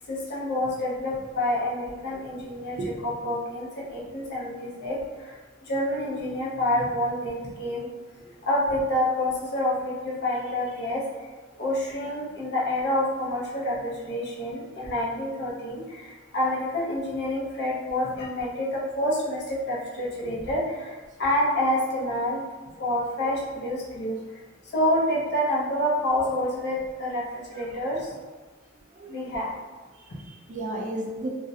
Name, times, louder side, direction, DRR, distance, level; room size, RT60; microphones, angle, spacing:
voice 1, 0.1-5.4 5.7-7.9 8.4-11.0 11.6-22.4 22.8-24.2 24.7-28.1 29.1-29.5 30.1-30.2, left 1 dB, 55° left, -5 dB, 0.6 m, -28 dB
voice 2, 28.9-29.5 30.0-31.3, right 1 dB, 40° right, -2 dB, 0.4 m, -35 dB
2.4 x 2.0 x 2.6 m, 1.4 s
head